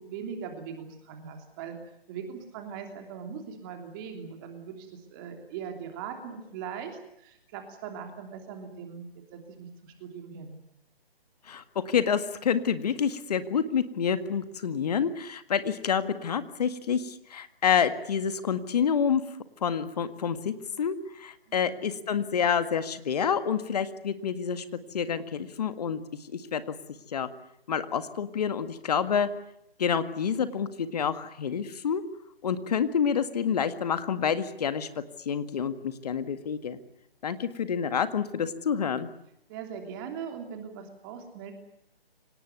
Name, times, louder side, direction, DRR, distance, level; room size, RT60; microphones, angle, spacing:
voice 1, 0.0-1.8 2.1-9.1 9.3-10.6 21.5-21.8 39.5-41.5, right 7 dB, 20° right, 4 dB, 3.2 m, -40 dB
voice 2, 11.5-19.2 19.6-24.6 24.9-26.0 26.3-26.6 27.1-27.3 27.7-29.3 29.8-32.0 32.4-34.9 35.3-36.8 37.2-39.1, left 7 dB, 40° left, 11 dB, 1.9 m, -28 dB
25.5 x 18.5 x 9.5 m, 0.79 s
figure-of-eight pair, 150°, 30 cm